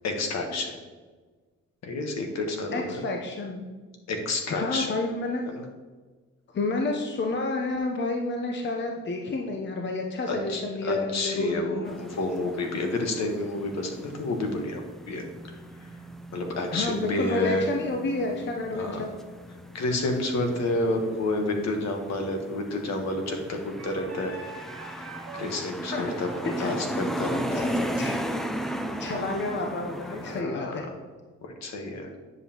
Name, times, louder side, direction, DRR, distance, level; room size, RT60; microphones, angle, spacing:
voice 1, 0.0-0.8 1.8-3.0 4.1-4.9 5.5-5.6 10.3-15.2 15.8-16.0 16.3-17.7 18.7-19.1 19.7-24.4 25.0-25.1 25.4-27.7 30.2-30.7 31.4-32.1, left 2 dB, 60° left, 3 dB, 1.3 m, -30 dB
voice 2, 2.7-3.6 4.5-5.4 6.5-11.9 16.7-19.1 25.8-26.7 27.5-27.7 28.0-28.1 29.0-30.8, left 2 dB, 40° left, 1 dB, 0.8 m, -30 dB
sound 1, 11.8-30.4, equal, ahead, 0.4 m, -36 dB
Wind instrument woodwind instrument, 23.8-29.2, right 3 dB, 55° right, 1.4 m, -45 dB
9.4 x 5.4 x 3.0 m, 1.4 s
cardioid pair, 90°, 30 cm